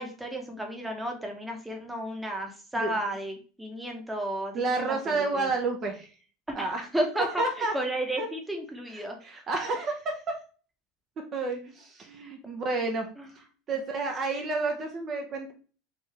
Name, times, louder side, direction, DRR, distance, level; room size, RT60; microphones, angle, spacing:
voice 1, 0.0-5.5 6.5-9.2 13.2-13.3, right 1 dB, 5° right, 2 dB, 0.9 m, -33 dB
voice 2, 4.5-6.1 6.5-6.8 7.4-7.7 8.2-8.3 8.9-10.2 11.3-13.1 13.4-15.5, right 3 dB, 40° right, 3 dB, 0.7 m, -30 dB
3.7 x 2.6 x 3.3 m, 0.38 s
supercardioid pair, 105°, 0 cm